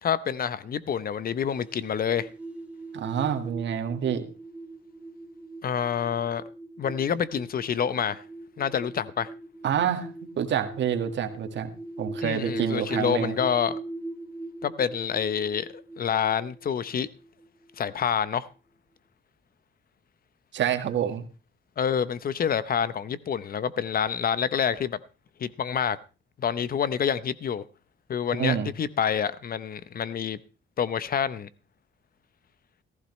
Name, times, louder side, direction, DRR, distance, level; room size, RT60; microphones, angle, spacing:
voice 1, 0.0-2.3 5.6-6.4 6.8-8.2 8.6-9.3 12.2-13.8 14.6-15.7 16.0-17.1 17.8-18.5 21.8-25.0 25.4-26.0 26.4-27.6 28.1-30.4 30.8-31.5, left 8 dB, 50° left, 0.8 m, -27 dB
sound 1, 1.5-17.8, right 2 dB, 5° right, 3.4 m, -40 dB
voice 2, 2.9-4.3 9.6-10.1 10.4-11.7 12.0-13.3 20.5-21.2 28.4-28.7, right 9 dB, 65° right, 1.7 m, -27 dB
15.0 x 14.5 x 3.2 m
cardioid pair, 90°, 20 cm